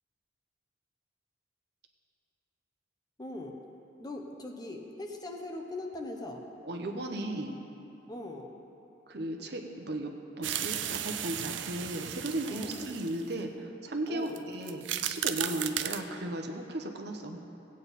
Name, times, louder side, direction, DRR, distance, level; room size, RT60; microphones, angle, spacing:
voice 1, 3.2-3.6 4.0-6.5 8.1-8.5 12.5-12.8 14.1-14.4 15.5-15.7, left 2 dB, 20° left, 2 dB, 0.8 m, -41 dB
voice 2, 6.6-7.5 9.1-10.1 10.4-17.4, right 1 dB, 60° right, 3 dB, 0.9 m, -36 dB
sound 1, 10.4-13.3 14.3-14.4 14.6-16.0, right 11 dB, 75° right, 0.5 m, -35 dB
17.0 x 8.7 x 4.2 m, 2.8 s
head